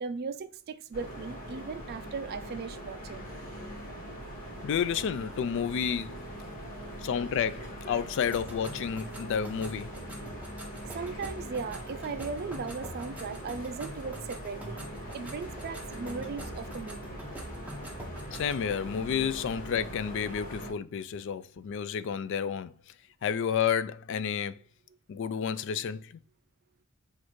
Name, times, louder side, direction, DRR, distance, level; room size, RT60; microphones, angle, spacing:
voice 1, 0.0-3.3 10.9-14.8 15.1-17.1, right 5 dB, 45° right, 0.3 m, -37 dB
sound 1, 0.9-20.7, right 1 dB, 40° left, 1.4 m, -42 dB
voice 2, 4.6-6.3 7.0-9.9 18.3-22.7 23.2-24.6 25.1-26.1, left 7 dB, 60° left, 0.3 m, -30 dB
sound 2, 8.3-18.6, right 1 dB, 5° right, 0.8 m, -45 dB
Aircraft / Engine, 14.8-19.8, right 1 dB, 20° left, 1.8 m, -54 dB
6.2 x 2.5 x 3.0 m
head